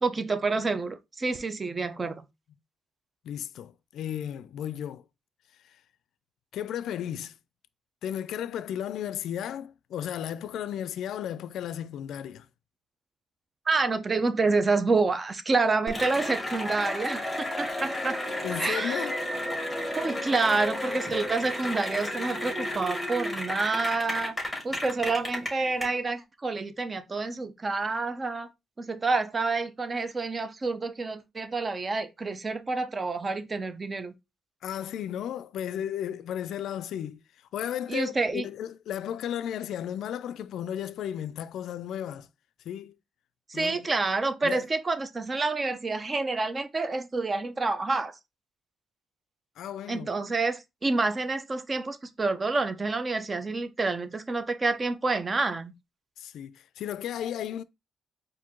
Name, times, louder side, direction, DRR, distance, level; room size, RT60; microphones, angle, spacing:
voice 1, 0.0-2.2 13.7-18.2 18.6-19.1 19.9-24.4 24.6-28.5 28.8-34.1 37.9-38.4 43.5-48.1 49.9-55.7, right 3 dB, 30° right, 0.6 m, -28 dB
voice 2, 3.2-5.0 5.6-5.8 6.5-7.3 8.0-12.5 18.4-19.2 34.6-37.2 37.5-42.3 42.7-42.9 43.5-43.9 44.4-44.7 49.6-50.1 56.2-57.6, left 10 dB, 75° left, 0.3 m, -34 dB
Cheering / Applause, 15.9-25.8, left 1 dB, 5° left, 2.1 m, -32 dB
4.5 x 2.6 x 3.6 m
cardioid pair, 90°, 0 cm